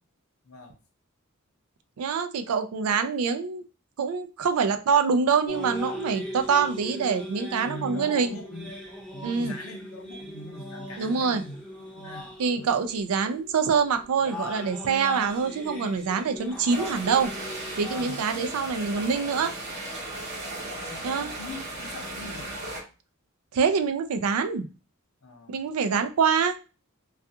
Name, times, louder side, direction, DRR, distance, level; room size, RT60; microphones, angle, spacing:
voice 1, 0.4-0.8 7.6-8.8 9.1-12.7 17.9-18.5 20.9-22.5 25.2-25.6, left 1 dB, 70° left, 4 dB, 0.6 m, -42 dB
voice 2, 2.0-3.6 4.0-8.4 9.2-9.5 11.0-11.4 12.4-17.3 17.8-19.5 21.0-21.3 23.5-24.7 25.5-26.5, right 6 dB, 80° right, 9 dB, 0.4 m, -25 dB
sound 1, 5.5-18.2, left 1 dB, 5° left, 0.6 m, -39 dB
sound 2, 16.7-22.8, right 1 dB, 50° right, 0.8 m, -36 dB
2.3 x 2.2 x 2.7 m, 0.32 s
head